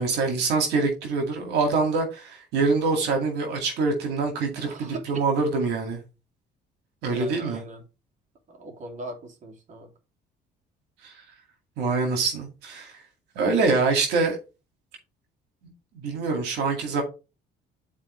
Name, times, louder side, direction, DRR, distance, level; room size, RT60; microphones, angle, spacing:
voice 1, 0.0-6.0 7.0-7.6 11.0-11.1 11.8-13.0 13.4-14.4 16.0-17.0, right 4 dB, 85° right, 2.2 m, -25 dB
voice 2, 4.6-5.0 7.1-7.8 8.5-9.9, right 2 dB, 45° right, 2.7 m, -39 dB
11.0 x 4.4 x 3.2 m
cardioid pair, 110°, 17 cm